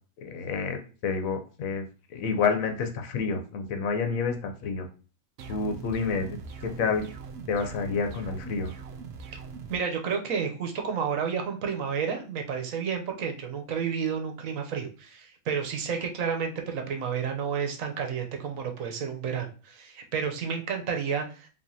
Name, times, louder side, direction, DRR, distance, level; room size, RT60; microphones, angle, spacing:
voice 1, 0.2-1.8 2.1-4.9 5.5-6.4 6.6-7.0 7.5-8.7, left 5 dB, 85° left, 6 dB, 1.2 m, -29 dB
sound 1, 5.4-9.8, right 5 dB, 65° right, 0.7 m, -42 dB
voice 2, 9.7-21.5, right 6 dB, 80° right, 4 dB, 1.2 m, -31 dB
4.9 x 2.9 x 2.7 m, 0.36 s
omnidirectional pair, 1.4 m